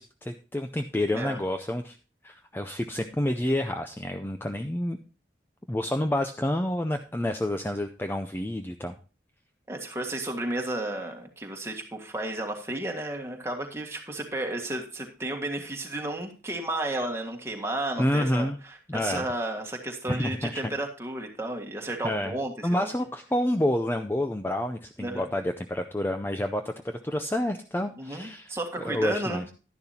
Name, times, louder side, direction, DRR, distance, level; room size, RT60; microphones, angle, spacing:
voice 1, 0.0-2.0 2.2-5.0 5.7-9.0 18.0-18.6 18.9-19.3 20.1-20.7 22.0-22.3 22.6-28.5 28.8-29.4, left 1 dB, 10° left, 6 dB, 0.5 m, -29 dB
voice 2, 9.7-22.9 25.0-25.3 28.0-29.5, right 1 dB, 15° right, 2 dB, 1.7 m, -33 dB
11.5 x 10.5 x 2.8 m, 0.35 s
head